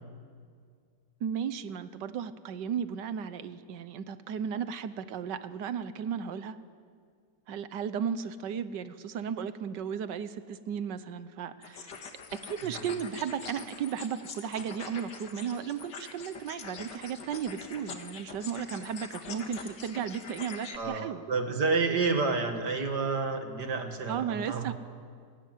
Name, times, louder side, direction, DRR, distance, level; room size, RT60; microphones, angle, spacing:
voice 1, 1.2-6.6 7.5-11.9 12.3-21.2 24.1-24.7, right 7 dB, 90° right, 13 dB, 1.6 m, -35 dB
sound 1, 11.6-20.8, left 5 dB, 80° left, 2.2 m, -44 dB
voice 2, 20.7-24.7, right 4 dB, 70° right, 5 dB, 2.5 m, -29 dB
28.5 x 13.0 x 9.4 m, 2.1 s
omnidirectional pair, 1.8 m